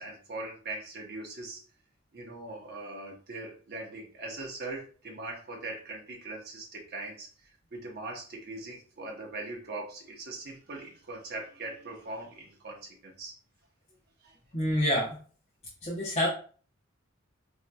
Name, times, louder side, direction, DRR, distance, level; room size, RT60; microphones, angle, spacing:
voice 1, 0.0-1.6 2.1-13.3 14.2-14.3, right 2 dB, 50° right, 0 dB, 0.9 m, -41 dB
voice 2, 14.5-15.2 15.8-16.3, equal, 30° left, -5 dB, 0.8 m, -27 dB
4.5 x 2.8 x 2.2 m, 0.42 s
head